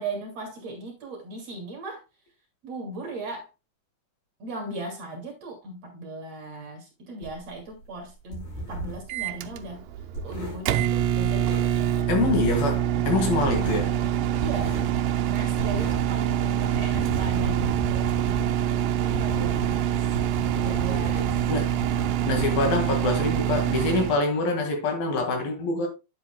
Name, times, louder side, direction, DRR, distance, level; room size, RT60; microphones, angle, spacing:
voice 1, 0.0-2.0 2.6-3.5 4.4-9.8 10.2-12.2 14.4-14.8 15.3-18.1 19.0-20.1 20.5-21.4, right 2 dB, 45° right, 3.1 m, -37 dB
sound 1, 7.2-9.1 9.4-12.0 12.2-12.8 13.1-16.2 16.5-23.2, right 1 dB, 55° left, 6.9 m, -36 dB
Microwave oven, 9.1-24.2, right 11 dB, 80° right, 2.1 m, -25 dB
voice 2, 12.1-13.9 21.5-21.9 22.3-25.9, left 3 dB, 70° left, 3.6 m, -25 dB
10.0 x 7.9 x 2.2 m
omnidirectional pair, 4.3 m